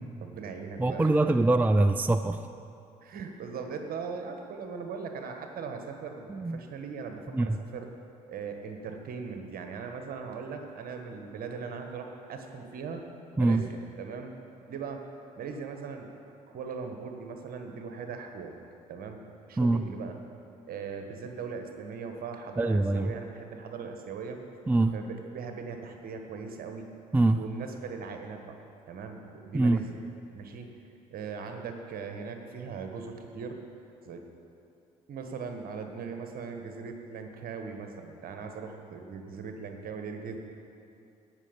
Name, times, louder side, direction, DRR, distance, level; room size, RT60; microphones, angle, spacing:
voice 1, 0.2-1.3 3.0-7.9 8.3-13.0 13.4-14.4 14.7-15.1 15.4-16.1 16.5-18.6 18.9-19.2 19.5-20.2 20.7-24.4 24.9-26.9 27.3-28.6 28.9-30.0 30.3-30.7 31.1-33.6 34.0-34.2 35.1-40.4, right 5 dB, 55° right, 5 dB, 1.4 m, -39 dB
voice 2, 0.8-2.4 6.3-6.6 7.3-7.6 13.4-13.6 19.6-19.8 22.6-23.1 24.7-24.9 27.1-27.4 29.5-29.8, right 2 dB, 10° right, 10 dB, 0.4 m, -24 dB
16.5 x 6.3 x 5.3 m, 2.7 s
figure-of-eight pair, 50°, 19 cm